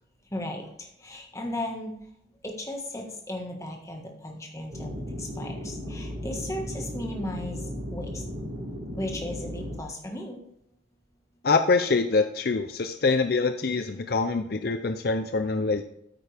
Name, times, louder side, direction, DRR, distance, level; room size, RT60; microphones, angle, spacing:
voice 1, 0.3-1.9 2.4-7.6 7.9-8.2 9.0-10.4, left 1 dB, 15° left, 1 dB, 1.5 m, -36 dB
sound 1, 4.7-9.8, equal, 45° right, 3.2 m, -35 dB
voice 2, 11.4-15.8, left 4 dB, 55° left, 8 dB, 0.5 m, -25 dB
9.1 x 8.8 x 3.4 m, 0.75 s
head